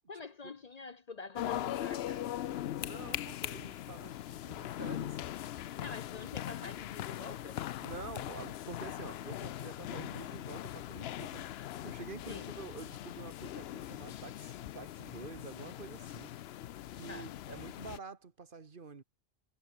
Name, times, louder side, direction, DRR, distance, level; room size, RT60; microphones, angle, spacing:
voice 1, 0.1-2.3 5.8-7.7 12.3-12.5 17.1-17.3, left 4 dB, 45° left, 0.8 m, -46 dB
sound 1, 1.3-18.0, left 12 dB, 75° left, 0.8 m, -41 dB
voice 2, 2.8-4.2 4.4-5.2 7.8-11.4 11.8-16.3 16.9-19.0, right 4 dB, 55° right, 1.5 m, -48 dB
omnidirectional pair, 1.1 m